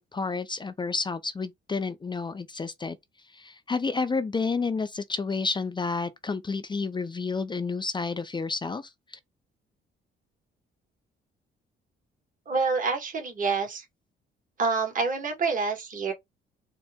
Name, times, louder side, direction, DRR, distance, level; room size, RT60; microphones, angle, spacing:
voice 1, 0.0-3.0 3.3-8.9, left 4 dB, 25° left, 0.4 m, -30 dB
voice 2, 12.5-13.8 14.6-16.1, right 4 dB, 40° right, 1.6 m, -27 dB
4.3 x 2.0 x 3.5 m
cardioid pair, 90°, 20 cm